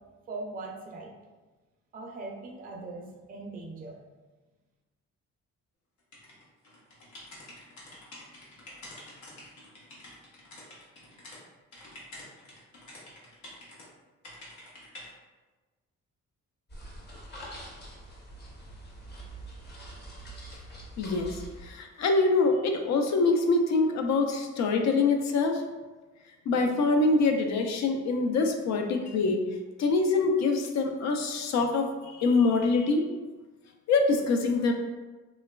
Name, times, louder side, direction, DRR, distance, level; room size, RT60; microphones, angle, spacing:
voice 1, 0.3-1.1 1.9-4.0, right 3 dB, 30° right, -1 dB, 0.4 m, -40 dB
sound 1, 6.1-11.4 11.7-13.8 14.2-15.1, left 1 dB, 85° left, 0.8 m, -48 dB
sound 2, 16.7-21.7, right 1 dB, 35° left, 0.7 m, -44 dB
voice 2, 21.0-25.6 26.5-29.4 29.8-31.9 32.2-33.0 33.9-34.7, left 3 dB, 70° left, 4 dB, 0.4 m, -25 dB
2.9 x 2.2 x 2.2 m, 1.2 s
cardioid pair, 105°, 29 cm